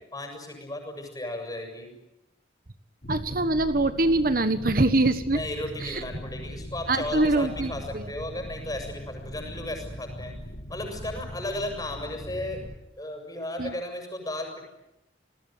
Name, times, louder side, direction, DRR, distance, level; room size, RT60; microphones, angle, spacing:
voice 1, 0.1-2.0 5.3-12.6 13.0-14.7, left 1 dB, 20° left, 4 dB, 7.2 m, -35 dB
sound 1, 3.0-12.8, equal, 50° left, 2.5 m, -40 dB
voice 2, 3.1-5.4 5.8-6.0 6.9-8.1 13.6-13.7, right 2 dB, 50° right, 10 dB, 1.4 m, -24 dB
30.0 x 20.0 x 9.2 m, 0.93 s
head